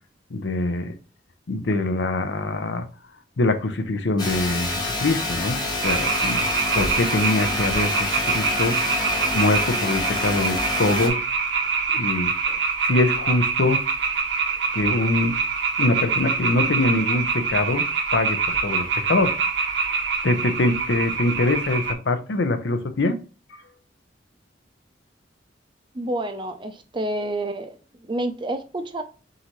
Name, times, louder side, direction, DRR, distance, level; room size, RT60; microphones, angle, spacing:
voice 1, 0.3-0.9 1.5-2.9 3.4-8.8 9.3-11.2 11.9-12.3 12.8-13.8 14.7-15.4 15.8-17.9 18.1-19.4 20.2-23.2 23.5-23.6, left 2 dB, 70° left, 0.7 m, -24 dB
sound 1, 4.2-11.1, left 2 dB, 25° left, 1.1 m, -27 dB
sound 2, 5.8-21.9, right 5 dB, 80° right, 0.8 m, -25 dB
voice 2, 25.9-29.0, right 1 dB, 25° right, 0.5 m, -29 dB
4.1 x 3.8 x 3.0 m
head